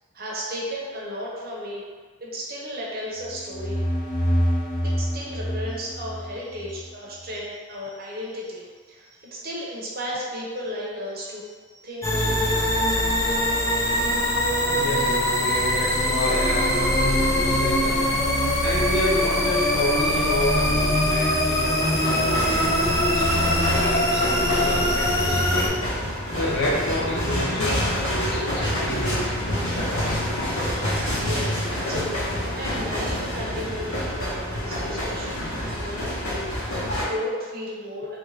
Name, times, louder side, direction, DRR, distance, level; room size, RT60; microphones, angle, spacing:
voice 1, 0.1-1.8 2.2-3.8 4.8-14.0 31.1-38.2, equal, 45° right, -4 dB, 0.7 m, -35 dB
sound 1, 3.2-6.8, equal, 10° right, 1.0 m, -26 dB
sound 2, 12.0-25.7, left 1 dB, 15° left, 0.3 m, -22 dB
voice 2, 14.5-18.2 18.6-23.3 23.7-25.9 26.3-29.4, left 1 dB, 55° left, -3 dB, 0.6 m, -29 dB
sound 3, 21.8-37.0, equal, 80° left, 1.2 m, -27 dB
3.2 x 2.7 x 3.2 m, 1.5 s
head